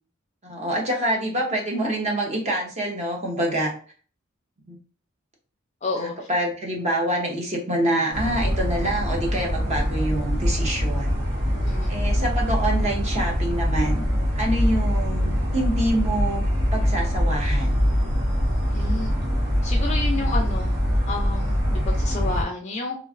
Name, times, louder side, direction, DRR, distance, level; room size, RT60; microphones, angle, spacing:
voice 1, 0.4-3.7 4.7-4.8 5.9-11.1 11.9-14.1 14.3-16.4 16.7-17.8, right 1 dB, 35° right, 0 dB, 0.7 m, -26 dB
voice 2, 5.8-6.1 11.6-11.9 18.7-19.1 19.6-20.7 21.0-23.0, left 3 dB, 35° left, 1 dB, 0.4 m, -30 dB
sound 1, 8.1-22.4, equal, 75° right, 1.0 m, -23 dB
3.0 x 2.4 x 2.4 m, 0.43 s
head